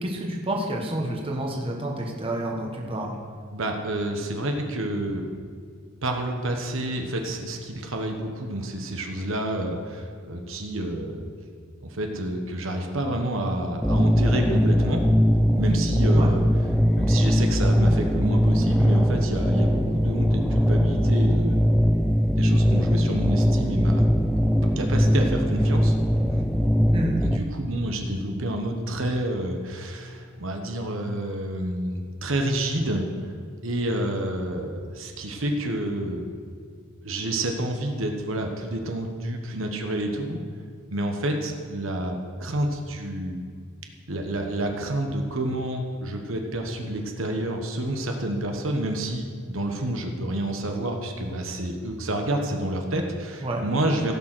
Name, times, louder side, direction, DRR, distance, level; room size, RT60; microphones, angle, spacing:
voice 1, 0.0-3.2 16.1-16.4 26.9-27.2 53.4-53.6, right 1 dB, 25° right, 0 dB, 1.4 m, -29 dB
voice 2, 3.5-5.3 6.0-11.2 11.8-15.0 15.5-16.4 17.0-21.6 22.3-24.1 24.6-26.0 26.3-26.4 27.2-33.0 33.6-36.3 37.0-40.4 40.9-43.4 44.1-54.1, right 1 dB, 70° right, 3 dB, 1.2 m, -29 dB
sound 1, 13.8-27.4, equal, ahead, 0.4 m, -21 dB
16.0 x 6.4 x 6.2 m, 2.2 s
head